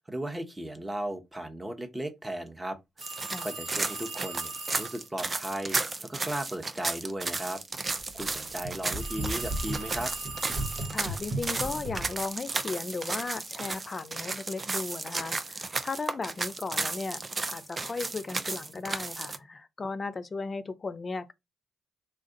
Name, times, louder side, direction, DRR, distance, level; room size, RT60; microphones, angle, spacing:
voice 1, 0.1-2.8 3.4-7.6 8.1-10.1, right 1 dB, 15° right, 1.0 m, -36 dB
sound 1, 3.0-19.4, right 3 dB, 35° right, 0.5 m, -34 dB
sound 2, 3.0-5.1 9.0-11.2, right 3 dB, 70° right, 1.7 m, -40 dB
sound 3, 7.9-12.2, right 1 dB, 50° right, 1.0 m, -36 dB
voice 2, 10.9-17.2 17.5-21.3, left 4 dB, 40° left, 0.5 m, -36 dB
3.4 x 2.5 x 3.7 m
hypercardioid pair, 45°, 0 cm